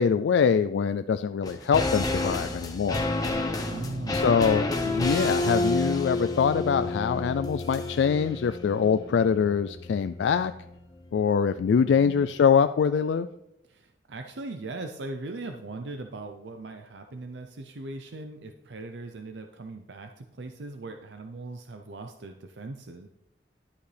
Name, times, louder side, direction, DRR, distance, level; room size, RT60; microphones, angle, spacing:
voice 1, 0.0-3.0 4.1-10.5 11.1-13.3, left 6 dB, 80° left, 11 dB, 0.3 m, -24 dB
sound 1, 1.4-10.8 11.1-11.2, left 2 dB, 20° left, 0.9 m, -30 dB
voice 2, 3.6-4.4 11.8-12.3 13.7-23.1, right 2 dB, 75° right, 5 dB, 0.6 m, -39 dB
11.5 x 8.1 x 3.3 m, 0.87 s
head